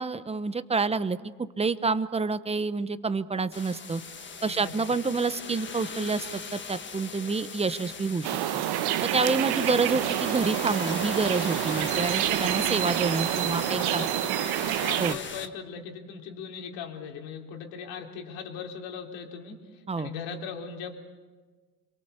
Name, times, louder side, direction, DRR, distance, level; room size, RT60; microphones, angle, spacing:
voice 1, 0.0-4.0 4.4-8.3 8.5-8.6 9.0-14.0 15.0-15.2 19.9-20.1, right 4 dB, 15° right, 14 dB, 1.0 m, -28 dB
sound 1, 3.5-15.5, left 5 dB, 25° left, 1.5 m, -39 dB
voice 2, 4.4-4.8 9.5-9.8 13.2-21.0, left 6 dB, 65° left, 2 dB, 3.8 m, -39 dB
sound 2, 8.2-15.1, right 14 dB, 55° right, 1.1 m, -28 dB
27.0 x 23.0 x 6.8 m, 1.4 s
supercardioid pair, 95°, 47 cm